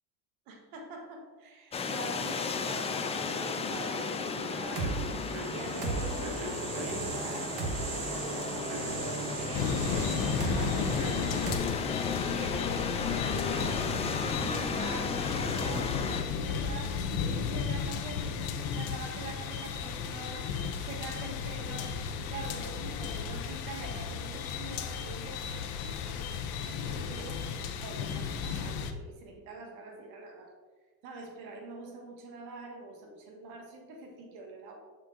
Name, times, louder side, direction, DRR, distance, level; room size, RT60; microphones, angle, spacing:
voice 1, 0.5-4.9 5.3-9.8 10.2-13.9 14.2-26.2 26.8-30.5 31.0-34.8, right 2 dB, 80° right, 1 dB, 1.4 m, -44 dB
sound 1, 1.7-16.2, left 5 dB, 15° left, 0.4 m, -34 dB
sound 2, 4.2-11.6, right 3 dB, 55° right, 1.3 m, -36 dB
sound 3, 9.5-28.9, left 6 dB, 60° left, 0.8 m, -34 dB
6.3 x 4.4 x 3.8 m, 1.4 s
supercardioid pair, 105°, 43 cm